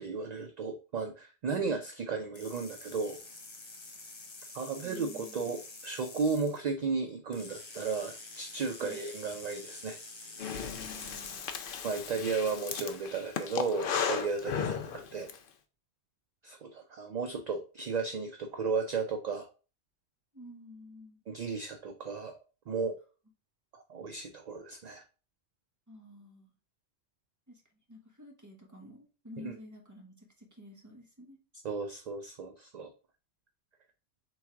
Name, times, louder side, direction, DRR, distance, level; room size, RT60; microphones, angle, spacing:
voice 1, 0.0-3.2 4.5-10.0 11.8-15.3 16.4-19.5 21.3-22.9 23.7-25.0 29.4-29.6 31.6-32.9, right 4 dB, 55° right, 6 dB, 0.4 m, -34 dB
sound 1, 2.3-6.6 7.3-11.6, left 3 dB, 30° left, 0.7 m, -48 dB
voice 2, 4.8-5.6 8.8-9.0 10.7-11.6 20.3-21.2 25.9-26.5 27.5-27.6 27.9-31.4, left 1 dB, 15° right, 1 dB, 1.0 m, -51 dB
Breathing, 10.4-15.4, left 7 dB, 60° left, 0.7 m, -35 dB
3.5 x 3.1 x 4.5 m, 0.35 s
omnidirectional pair, 1.1 m